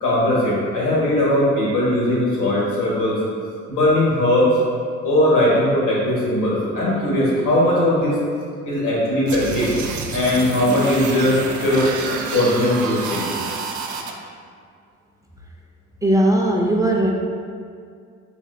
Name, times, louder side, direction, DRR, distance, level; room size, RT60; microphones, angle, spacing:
voice 1, 0.0-3.2 3.7-4.5 5.0-8.2 8.6-9.7 10.1-11.9 12.3-13.3, left 1 dB, 90° left, -6 dB, 1.4 m, -19 dB
sound 1, 9.3-14.1, right 4 dB, 75° right, 0.5 m, -28 dB
voice 2, 16.0-17.1, right 1 dB, 10° right, 0 dB, 0.3 m, -18 dB
4.0 x 3.2 x 2.5 m, 2.2 s
cardioid pair, 90°, 30 cm